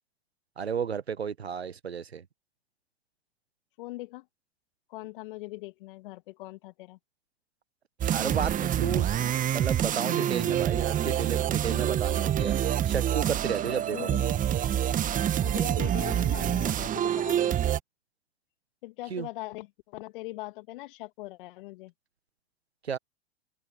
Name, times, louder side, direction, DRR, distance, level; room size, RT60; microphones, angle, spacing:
voice 1, 0.6-2.2 8.0-12.5 12.9-14.1 19.1-19.3 22.8-23.0, right 7 dB, 90° right, 1.2 m, -33 dB
voice 2, 3.8-4.3 4.9-7.0 13.9-14.5 15.4-17.8 18.8-21.9, left 20 dB, 55° left, 2.0 m, -41 dB
sound 1, 8.0-17.8, right 10 dB, 25° right, 1.4 m, -27 dB
open air
hypercardioid pair, 100°, 31 cm